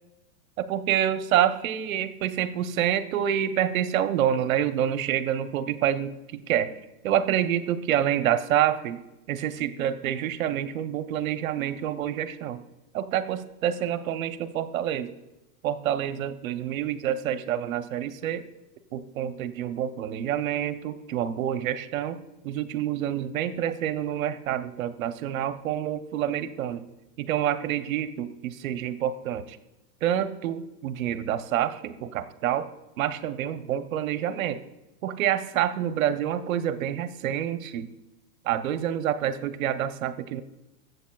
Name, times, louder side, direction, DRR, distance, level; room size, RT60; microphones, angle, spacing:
voice 1, 0.6-6.7 7.0-12.6 12.9-15.1 15.6-18.4 18.9-22.2 22.4-26.8 27.2-29.6 30.0-32.7 33.0-34.6 35.0-37.9 38.4-40.4, right 10 dB, 60° right, 11 dB, 0.9 m, -27 dB
19.5 x 8.0 x 2.3 m, 0.97 s
supercardioid pair, 155°, 46 cm